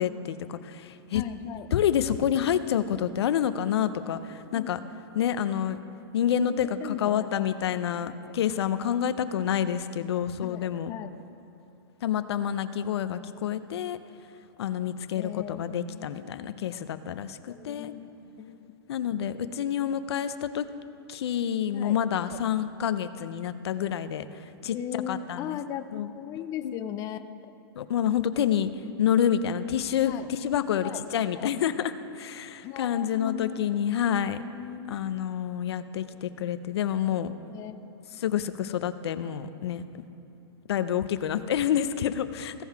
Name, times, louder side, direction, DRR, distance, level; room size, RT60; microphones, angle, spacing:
voice 1, 0.0-1.2 1.7-4.8 5.1-5.8 6.1-11.0 12.0-14.0 14.6-17.9 18.9-20.7 21.1-25.6 25.9-26.1 26.6-26.8 27.8-28.7 29.0-34.4 34.9-37.3 38.2-39.8 40.7-42.6, left 9 dB, 75° left, 12 dB, 0.5 m, -28 dB
voice 2, 1.1-1.7 4.5-4.9 5.4-5.7 6.5-7.3 10.4-11.1 15.2-16.1 17.5-18.7 21.7-22.0 22.3-22.4 24.7-27.2 30.1-30.3 30.8-31.0 31.3-31.5 32.6-33.6 34.5-35.0 37.5-37.7 38.1-38.2, left 10 dB, 25° left, 8 dB, 0.4 m, -38 dB
16.0 x 5.4 x 4.6 m, 3.0 s
hypercardioid pair, 140°, 14 cm